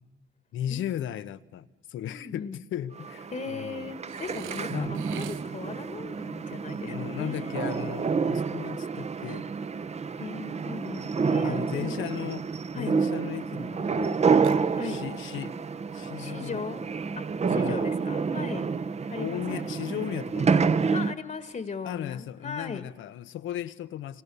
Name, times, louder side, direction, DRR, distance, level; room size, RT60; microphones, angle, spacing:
voice 1, 0.5-3.9 4.7-5.0 6.8-9.5 11.4-12.5 12.8-14.2 14.8-15.6 15.9-16.6 17.5-17.9 19.1-20.8 21.8-24.2, left 11 dB, 80° left, 1.1 m, -36 dB
voice 2, 2.1-2.6 3.3-8.0 10.2-12.1 12.7-12.9 14.7-15.0 16.2-16.8 17.2-18.7 19.1-19.8 20.9-22.9, left 5 dB, 40° left, 1.6 m, -38 dB
sound 1, 3.0-21.1, right 5 dB, 35° right, 1.0 m, -29 dB
Burping eructation, 4.1-5.8 14.4-15.2, right 13 dB, 85° right, 0.7 m, -44 dB
29.0 x 25.0 x 6.9 m
cardioid pair, 90°, 20 cm